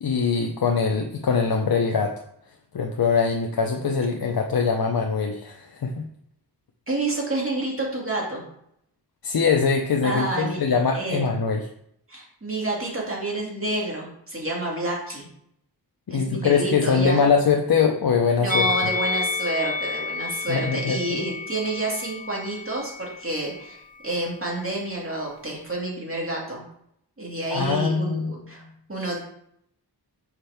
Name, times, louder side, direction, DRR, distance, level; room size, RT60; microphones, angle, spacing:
voice 1, 0.0-2.1 2.7-6.1 9.2-11.6 16.1-18.7 20.5-21.2 27.5-28.3, left 5 dB, 60° left, 3 dB, 0.6 m, -22 dB
voice 2, 6.9-8.5 10.0-11.3 12.1-15.3 16.1-17.3 18.4-26.6 27.2-28.6 28.9-29.2, right 2 dB, 30° right, -3 dB, 2.2 m, -29 dB
Musical instrument, 18.5-23.7 24.0-24.2, left 4 dB, 20° left, 0.6 m, -30 dB
5.9 x 5.4 x 3.4 m, 0.73 s
wide cardioid pair, 80°, 41 cm